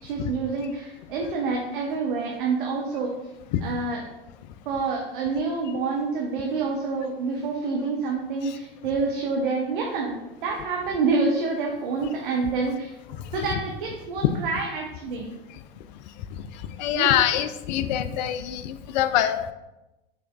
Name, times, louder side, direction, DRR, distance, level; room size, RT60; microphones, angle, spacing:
voice 1, 0.0-3.1 3.6-4.0 4.7-12.9 13.3-15.3 16.9-17.1, right 4 dB, 60° right, -1 dB, 0.8 m, -27 dB
voice 2, 16.8-19.5, left 11 dB, 50° left, 11 dB, 0.4 m, -24 dB
6.5 x 3.4 x 2.3 m, 0.98 s
figure-of-eight pair, 90°, 30 cm